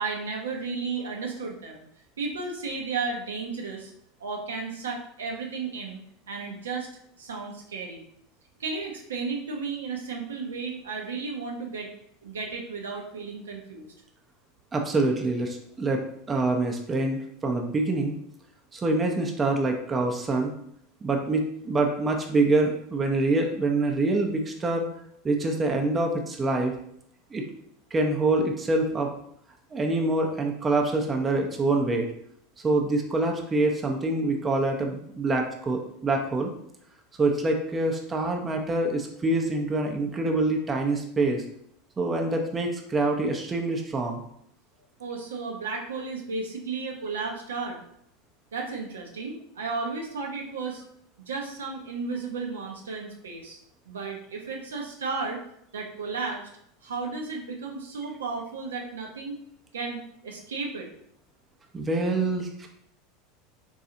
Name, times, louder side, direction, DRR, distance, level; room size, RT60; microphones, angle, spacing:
voice 1, 0.0-1.8 2.2-3.9 4.2-6.0 6.3-6.9 7.2-8.0 8.6-11.9 12.2-13.9 45.0-47.8 48.5-50.8 51.3-53.6 53.9-55.4 55.7-56.5 56.8-59.4 59.7-60.9, right 4 dB, 75° right, 0 dB, 0.6 m, -33 dB
voice 2, 14.7-16.0 16.3-18.1 18.7-20.5 21.0-24.9 25.2-26.7 27.3-27.5 27.9-29.1 29.7-32.1 32.6-36.5 37.2-41.4 42.0-44.2 61.7-62.7, right 2 dB, 25° right, 2 dB, 0.6 m, -25 dB
3.9 x 2.3 x 2.7 m, 0.70 s
figure-of-eight pair, 80°, 0 cm